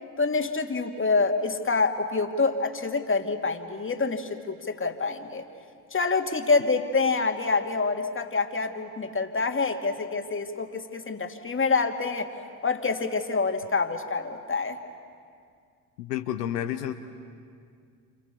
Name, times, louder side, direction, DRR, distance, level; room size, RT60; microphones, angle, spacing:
voice 1, 0.2-5.4 5.9-12.3 12.6-14.8, left 4 dB, 25° left, 5 dB, 2.5 m, -26 dB
voice 2, 16.0-17.0, left 11 dB, 85° left, 6 dB, 1.1 m, -30 dB
29.5 x 28.0 x 7.0 m, 2.2 s
hypercardioid pair, 55°, 46 cm